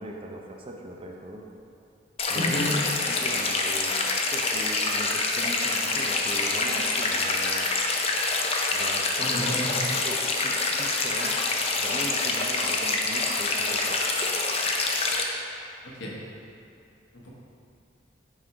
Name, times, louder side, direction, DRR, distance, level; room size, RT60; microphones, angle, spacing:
voice 1, 0.0-1.4 2.3-2.8 3.1-4.0 4.3-7.7 8.7-9.5 10.0-11.4 11.8-14.0, right 1 dB, 30° right, 0 dB, 0.6 m, -39 dB
sound 1, 2.2-15.2, left 3 dB, 35° left, 0.5 m, -26 dB
voice 2, 2.3-2.7 9.2-9.7 16.0-16.1, left 1 dB, 80° left, -4 dB, 1.2 m, -30 dB
6.1 x 3.6 x 4.9 m, 2.5 s
head